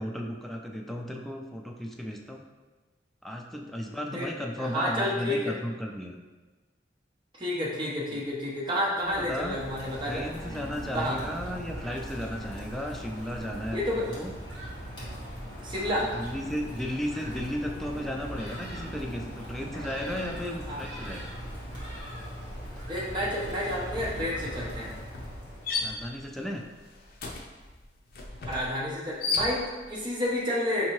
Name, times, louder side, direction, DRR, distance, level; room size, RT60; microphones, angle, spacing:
voice 1, 0.0-2.5 3.2-6.2 8.2-8.3 9.0-9.6 10.0-14.3 15.6-21.3 25.8-26.6, equal, ahead, 1 dB, 0.3 m, -35 dB
voice 2, 4.6-5.5 7.4-10.3 10.9-11.2 13.7-14.1 15.6-16.1 20.7-20.8 22.8-24.9 28.5-30.9, left 1 dB, 25° right, -5 dB, 0.7 m, -30 dB
Rain, 8.9-26.1, equal, 25° left, 1.2 m, -40 dB
Thunderstorm, 10.1-24.7, equal, 70° right, 1.1 m, -50 dB
sound 1, 21.0-21.3 21.6-30.0, left 3 dB, 55° left, 0.6 m, -37 dB
5.2 x 2.7 x 3.0 m, 1.2 s
head